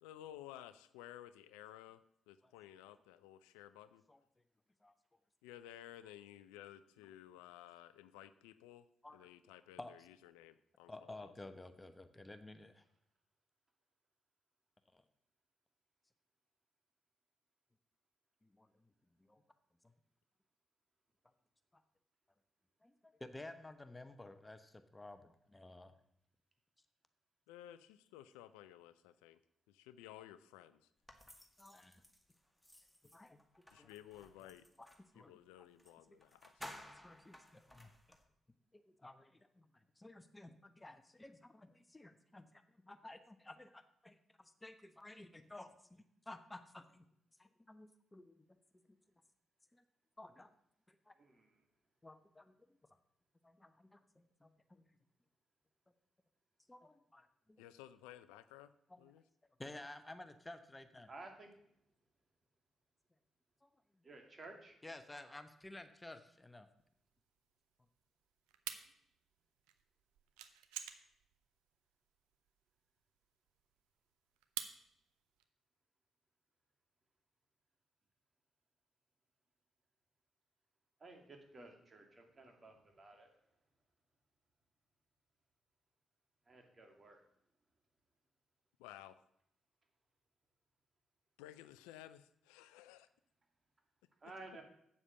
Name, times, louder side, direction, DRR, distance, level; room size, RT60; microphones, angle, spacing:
voice 1, 0.0-2.0 2.3-4.0 5.4-8.9 9.1-11.3 27.5-29.4 29.7-30.9 33.7-34.6 35.1-36.7 57.6-58.7 59.0-59.2 88.8-89.2 91.4-93.1 94.2-94.3, left 12 dB, 80° left, 14 dB, 0.4 m, -55 dB
voice 2, 10.9-12.8 14.9-15.0 18.4-18.7 19.2-19.4 21.7-21.8 22.8-25.9 31.6-32.0 32.8-33.4 33.8-33.9 34.4-34.9 35.1-35.4 36.1-36.2 37.0-37.9 38.7-39.7 40.0-47.0 47.4-48.5 49.7-49.8 50.2-50.5 50.9-51.2 52.0-52.5 53.4-54.9 56.7-57.6 58.9-59.0 59.6-61.1 63.6-63.7 64.8-66.7, left 2 dB, 20° left, 9 dB, 1.0 m, -54 dB
sound 1, 31.1-35.1 35.8-35.9 36.2-38.2, left 1 dB, ahead, 2.0 m, -56 dB
voice 3, 51.2-51.6 61.1-61.5 64.0-64.8 81.0-83.3 86.5-87.2 94.2-94.6, right 2 dB, 40° right, 3 dB, 2.5 m, -54 dB
sound 2, 66.8-75.4, right 11 dB, 80° right, 0.6 m, -49 dB
8.5 x 7.3 x 6.8 m, 0.73 s
hypercardioid pair, 40°, 0 cm